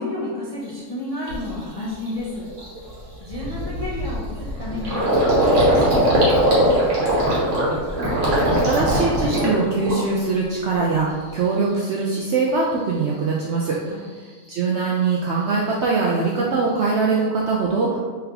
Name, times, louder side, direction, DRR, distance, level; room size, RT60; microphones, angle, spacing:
voice 1, 0.0-2.5 3.2-5.1 5.5-7.1 13.9-14.1, left 2 dB, 50° left, -8 dB, 0.4 m, -31 dB
Gurgling, 0.7-0.8 1.3-1.5 1.9-2.1 2.3-10.4 10.7-11.4, equal, 55° right, 1.4 m, -20 dB
voice 2, 8.2-13.8 14.5-18.1, right 4 dB, 70° right, -3 dB, 0.6 m, -22 dB
4.0 x 3.4 x 2.8 m, 1.5 s
omnidirectional pair, 1.6 m